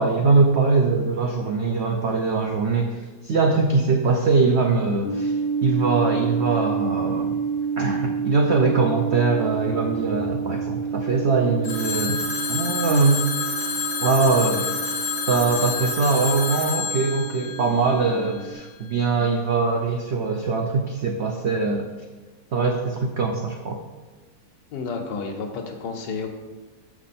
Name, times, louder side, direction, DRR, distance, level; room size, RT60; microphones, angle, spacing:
voice 1, 0.0-5.3 5.6-7.4 7.8-12.2 12.5-13.2 14.0-14.6 15.3-21.8 22.5-23.8, right 4 dB, 75° right, 3 dB, 0.6 m, -22 dB
sound 1, 5.0-18.5, right 6 dB, 55° right, 2.3 m, -29 dB
Telephone, 11.6-18.5, left 5 dB, 65° left, 1.7 m, -29 dB
voice 2, 14.2-14.8 24.7-26.3, left 4 dB, 85° left, 4 dB, 1.6 m, -31 dB
6.4 x 5.9 x 4.2 m, 1.3 s
omnidirectional pair, 1.9 m